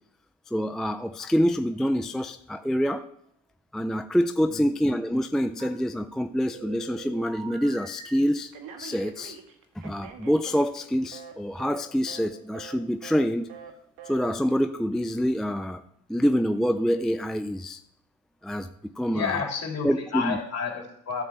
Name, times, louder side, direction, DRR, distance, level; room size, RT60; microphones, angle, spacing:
voice 1, 0.5-3.1 3.7-8.5 8.8-9.4 9.8-13.5 14.1-15.8 16.1-17.8 18.4-19.5 19.8-20.4, equal, ahead, 8 dB, 0.3 m, -26 dB
Telephone, 5.6-6.2 6.5-8.1 8.5-11.3 11.6-11.8 12.1-12.3 12.5-12.8 13.0-13.2 13.5-13.7 14.0-14.2, right 7 dB, 80° right, 1.5 m, -44 dB
voice 2, 19.1-21.2, left 6 dB, 45° left, 0 dB, 3.3 m, -30 dB
13.0 x 5.2 x 7.4 m, 0.74 s
cardioid pair, 100°, 34 cm